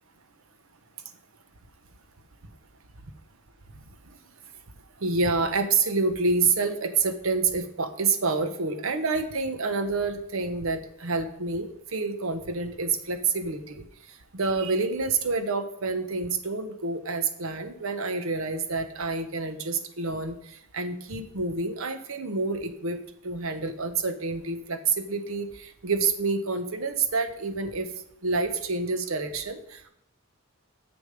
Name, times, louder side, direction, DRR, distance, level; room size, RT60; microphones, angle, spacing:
voice 1, 5.0-13.8 14.3-23.0 23.2-27.9 28.2-29.9, right 4 dB, 70° right, 8 dB, 0.9 m, -28 dB
7.2 x 6.6 x 5.1 m, 0.75 s
head